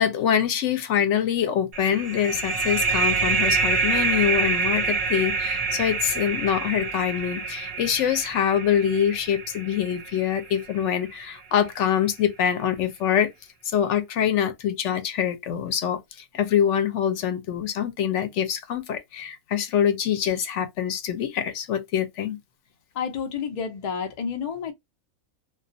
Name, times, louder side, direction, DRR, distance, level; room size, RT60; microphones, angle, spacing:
voice 1, 0.0-13.3 13.7-16.0 16.3-22.4, left 9 dB, 65° left, 0.8 m, -24 dB
sound 1, 1.7-11.0, right 4 dB, 60° right, 0.8 m, -26 dB
voice 2, 22.9-24.7, left 6 dB, 85° left, 0.3 m, -30 dB
2.3 x 2.2 x 2.5 m
omnidirectional pair, 1.5 m